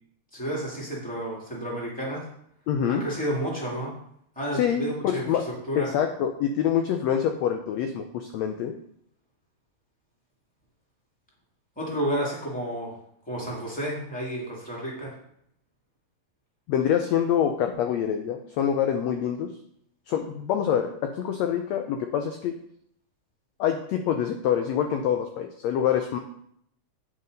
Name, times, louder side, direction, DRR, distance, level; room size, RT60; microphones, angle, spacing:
voice 1, 0.3-2.2 2.9-3.9 4.3-5.9 11.8-13.0 13.2-15.1, right 1 dB, 5° left, -4 dB, 2.4 m, -31 dB
voice 2, 2.7-3.0 4.6-5.4 5.7-8.7 16.7-19.5 20.1-22.5 23.6-26.2, left 9 dB, 75° left, 5 dB, 1.6 m, -26 dB
8.8 x 6.8 x 5.2 m, 0.69 s
omnidirectional pair, 3.8 m